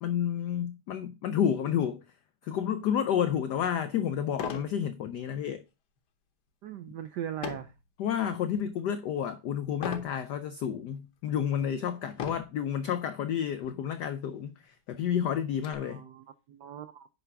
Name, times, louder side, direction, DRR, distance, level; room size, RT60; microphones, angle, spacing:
voice 1, 0.0-2.0 2.4-5.6 8.0-16.0, left 9 dB, 85° left, 0.9 m, -30 dB
sound 1, 3.4-3.5 4.3-4.8 5.2-5.5 7.4-7.8 8.4-8.8 9.8-10.2 10.9-11.0 12.1-12.6 13.6-13.8 14.1-14.2 14.6-15.7, left 7 dB, 55° left, 1.4 m, -38 dB
voice 2, 6.6-7.7 15.8-17.1, right 10 dB, 85° right, 0.9 m, -39 dB
9.7 x 3.4 x 5.8 m
omnidirectional pair, 2.4 m